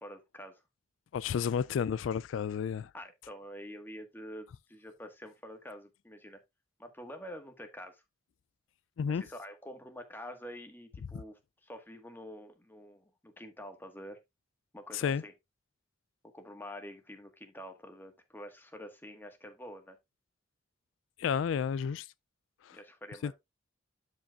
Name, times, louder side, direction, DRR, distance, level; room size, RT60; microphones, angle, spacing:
voice 1, 0.0-0.6 2.9-6.4 6.8-8.0 9.1-14.2 14.7-15.3 16.3-20.0 22.7-23.3, equal, 10° left, 1.5 m, -47 dB
voice 2, 1.1-2.9 9.0-9.2 14.9-15.2 21.2-22.1 22.6-22.8 23.2-23.3, left 7 dB, 85° left, 0.3 m, -31 dB
12.5 x 5.2 x 2.4 m
head